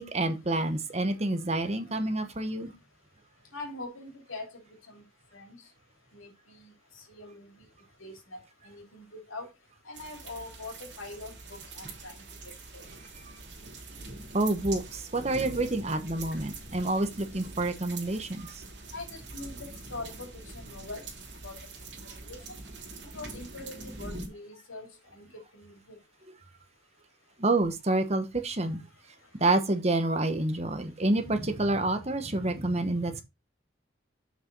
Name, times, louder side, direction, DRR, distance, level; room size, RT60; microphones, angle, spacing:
voice 1, 0.0-2.7 14.3-18.5 27.4-28.8 29.4-33.2, right 2 dB, 30° right, 1.1 m, -28 dB
voice 2, 3.5-5.0 5.3-5.7 6.1-7.6 8.0-9.5 9.8-12.8 18.9-21.1 21.4-21.6 22.1-22.6 23.0-26.0, left 2 dB, 85° left, 2.8 m, -44 dB
sound 1, 9.9-24.3, right 3 dB, 60° right, 3.0 m, -44 dB
7.5 x 6.1 x 4.0 m
head